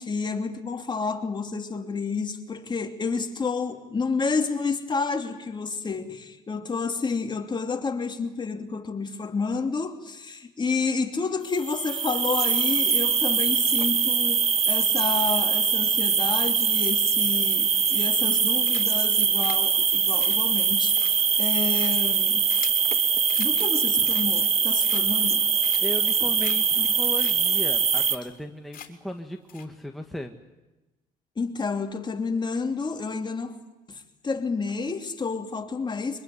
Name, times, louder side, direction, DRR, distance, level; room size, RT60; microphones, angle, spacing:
voice 1, 0.0-22.5 23.4-25.4 26.2-26.3 26.8-26.9 31.4-33.6 33.9-36.2, left 4 dB, 25° left, 2.9 m, -30 dB
sound 1, 11.6-28.2, right 6 dB, 35° right, 1.6 m, -23 dB
sound 2, 17.9-18.3 18.6-19.1 19.4-22.9 23.3-23.6 23.9-24.5 24.8-25.3 25.6-26.0 26.4-26.6 26.8-26.9 27.2-27.3 27.6-27.7 28.0-28.4 28.7-29.1 29.5-29.7, left 10 dB, 55° left, 3.5 m, -43 dB
voice 2, 25.8-30.3, left 1 dB, ahead, 1.6 m, -36 dB
24.0 x 21.0 x 9.9 m
cardioid pair, 110°, 17 cm